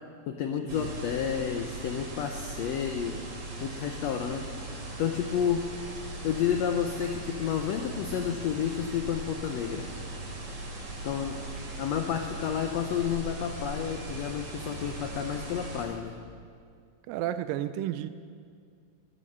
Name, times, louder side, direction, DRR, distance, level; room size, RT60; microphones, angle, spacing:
voice 1, 0.3-3.2 3.6-4.5 5.0-5.6 6.2-9.8 11.0-11.4 11.8-16.1, left 8 dB, 85° left, 5 dB, 1.5 m, -30 dB
sound 1, 0.7-15.8, right 2 dB, 55° right, 4.1 m, -39 dB
voice 2, 17.1-18.1, right 12 dB, 85° right, 12 dB, 2.3 m, -32 dB
12.5 x 11.0 x 6.5 m, 2.2 s
omnidirectional pair, 3.9 m